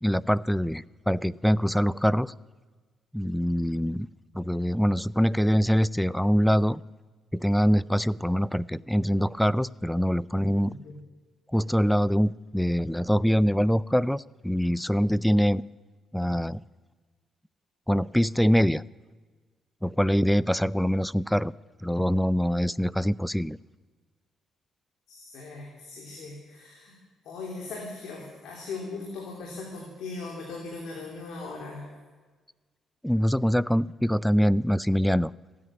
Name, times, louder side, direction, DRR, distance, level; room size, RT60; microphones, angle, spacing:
voice 1, 0.0-2.3 3.1-4.1 4.3-6.8 7.3-10.7 11.5-15.6 16.1-16.6 17.9-18.8 19.8-21.5 21.8-23.6 33.0-35.3, equal, ahead, 21 dB, 0.4 m, -24 dB
voice 2, 10.6-11.0 25.1-26.9 27.2-31.8, left 3 dB, 80° left, -1 dB, 3.0 m, -39 dB
15.5 x 9.7 x 8.7 m, 1.4 s
cardioid pair, 90°, 0 cm